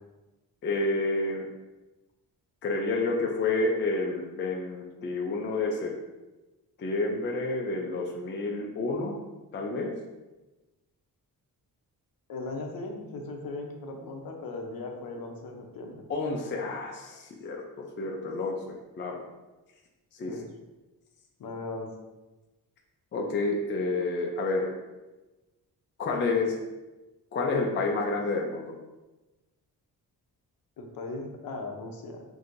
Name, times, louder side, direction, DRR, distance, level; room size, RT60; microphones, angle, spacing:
voice 1, 0.6-1.5 2.6-5.9 6.8-9.2 9.5-9.9 16.1-18.6 18.9-19.3 20.1-20.4 23.1-24.7 26.0-26.6 27.3-28.7, left 3 dB, 30° left, 0 dB, 0.4 m, -29 dB
voice 2, 12.3-16.0 20.3-20.4 21.4-21.9 30.8-32.2, left 2 dB, 60° left, 2 dB, 0.7 m, -38 dB
6.0 x 2.7 x 2.5 m, 1.1 s
wide cardioid pair, 170°, 39 cm